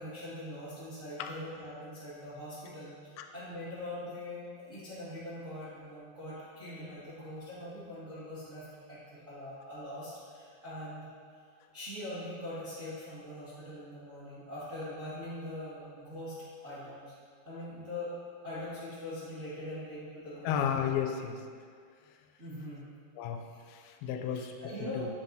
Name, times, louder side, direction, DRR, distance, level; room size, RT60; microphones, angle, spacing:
voice 1, 0.0-11.1 11.7-16.3 16.6-17.1 17.4-18.1 18.4-20.5 22.4-22.8 24.6-25.0, left 1 dB, 40° right, -13 dB, 1.1 m, -42 dB
voice 2, 20.4-21.4 23.2-24.5 24.9-25.1, left 8 dB, 90° left, 5 dB, 2.5 m, -33 dB
7.4 x 7.1 x 2.6 m, 2.1 s
omnidirectional pair, 4.4 m